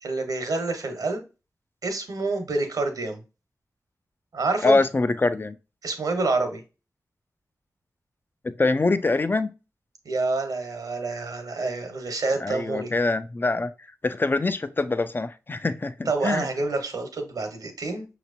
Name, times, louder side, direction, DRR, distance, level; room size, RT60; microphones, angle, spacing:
voice 1, 0.0-1.2 1.8-3.2 4.3-4.8 5.8-6.6 10.0-12.9 16.1-18.1, right 3 dB, 80° right, 1.1 m, -27 dB
voice 2, 4.6-5.6 8.4-9.5 12.4-13.7 14.0-16.5, left 3 dB, 35° left, 0.5 m, -24 dB
5.8 x 3.0 x 2.6 m
cardioid pair, 45°, 6 cm